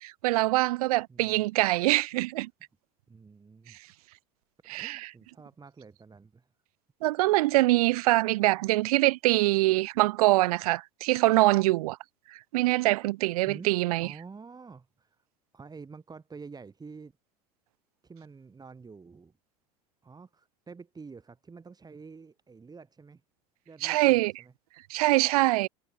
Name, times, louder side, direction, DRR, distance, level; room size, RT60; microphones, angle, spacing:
voice 1, 0.0-2.5 4.7-5.1 7.0-12.0 12.5-14.1 23.8-24.3 24.9-25.7, right 19 dB, 65° right, 0.7 m, -24 dB
voice 2, 1.1-1.4 3.1-3.9 4.6-6.5 8.3-8.5 13.5-13.7 14.0-15.2 15.5-17.1 18.0-19.3 20.0-23.2 23.7-24.5, right 4 dB, 20° right, 6.7 m, -48 dB
hypercardioid pair, 80°, 20 cm